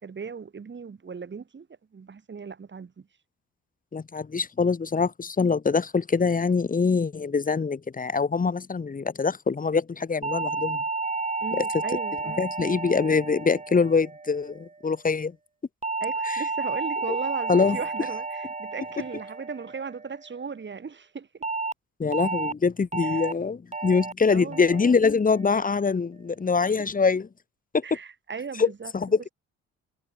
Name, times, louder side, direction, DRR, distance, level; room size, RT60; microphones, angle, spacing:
voice 1, 0.0-1.7 1.9-3.1 11.4-12.4 16.0-21.4 23.1-23.3 24.3-24.8 26.6-26.9 27.8-28.9, right 5 dB, 40° right, 5.5 m, -37 dB
voice 2, 3.9-10.8 11.5-11.6 12.4-15.3 17.5-17.8 22.0-27.3 28.6-28.7 28.9-29.2, left 5 dB, 30° left, 1.6 m, -24 dB
sound 1, 10.2-14.7 15.8-20.3 21.4-21.7 22.1-22.5 22.9-23.3 23.7-24.1 24.5-24.9 25.3-25.7, right 3 dB, 20° right, 3.2 m, -32 dB
cardioid pair, 90°, 30 cm